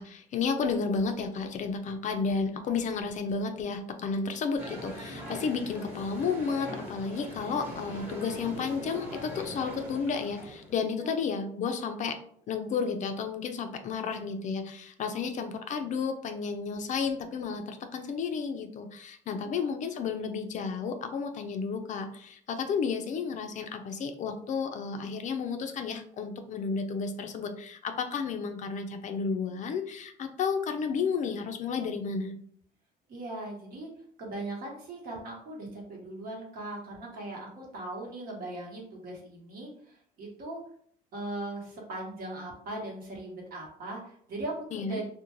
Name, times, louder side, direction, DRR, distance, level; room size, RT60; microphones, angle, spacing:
voice 1, 0.0-12.2 12.5-32.3 44.7-45.0, left 5 dB, 45° left, 7 dB, 0.4 m, -32 dB
sound 1, 4.6-10.7, equal, 10° right, 1.0 m, -41 dB
voice 2, 10.7-11.1 15.0-15.3 19.3-19.7 33.1-33.9 34.2-40.6 41.1-45.1, right 2 dB, 60° right, -2 dB, 1.1 m, -39 dB
2.4 x 2.1 x 3.0 m, 0.62 s
cardioid pair, 110°, 17 cm